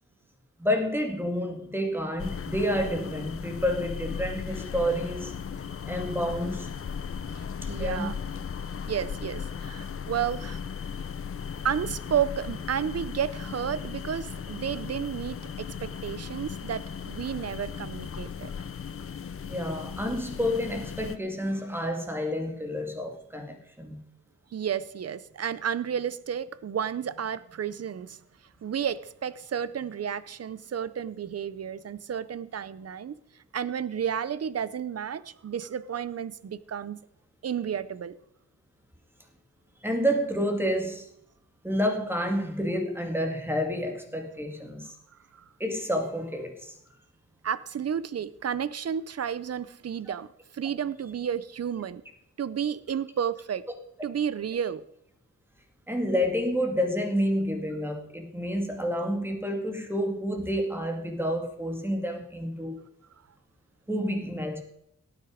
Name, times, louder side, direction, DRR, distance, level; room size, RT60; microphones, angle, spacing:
voice 1, 0.6-5.3 5.8-6.7 7.6-8.1 19.5-24.0 39.8-41.1 41.6-45.0 45.6-46.8 55.9-62.8 63.9-64.6, equal, 5° right, 4 dB, 2.2 m, -29 dB
sound 1, 2.2-21.2, left 7 dB, 45° left, 0.7 m, -37 dB
voice 2, 7.3-8.2 8.9-10.6 11.6-18.5 24.5-28.2 28.6-33.1 33.5-37.0 37.4-38.1 47.4-50.3 50.5-52.0 52.4-53.7 54.0-54.8, right 8 dB, 50° right, 17 dB, 0.7 m, -32 dB
16.5 x 9.3 x 5.1 m, 0.76 s
wide cardioid pair, 110°, 31 cm